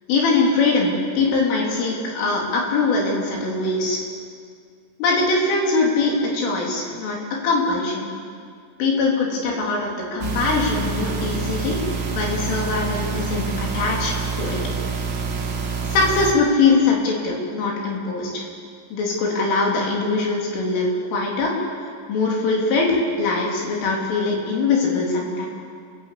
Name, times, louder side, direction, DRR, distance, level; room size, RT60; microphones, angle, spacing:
voice 1, 0.1-4.0 5.0-8.1 8.8-14.6 15.9-18.4 18.9-21.5 22.1-25.5, left 3 dB, 85° left, -1 dB, 6.1 m, -22 dB
sound 1, 10.2-16.3, right 5 dB, 55° right, 1.2 m, -27 dB
28.5 x 14.5 x 8.5 m, 2.2 s
omnidirectional pair, 5.5 m